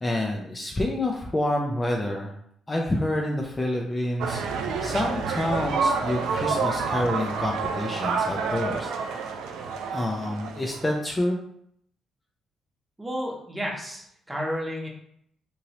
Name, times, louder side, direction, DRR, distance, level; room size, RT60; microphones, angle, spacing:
voice 1, 0.0-2.3 2.7-4.4 4.8-9.2 9.9-11.4, left 1 dB, 20° left, 0 dB, 0.4 m, -28 dB
sound 1, 4.2-11.0, right 4 dB, 90° right, 0.3 m, -28 dB
voice 2, 13.0-14.9, equal, 10° right, -1 dB, 0.9 m, -31 dB
3.0 x 2.7 x 2.8 m, 0.71 s
cardioid pair, 90°, 0 cm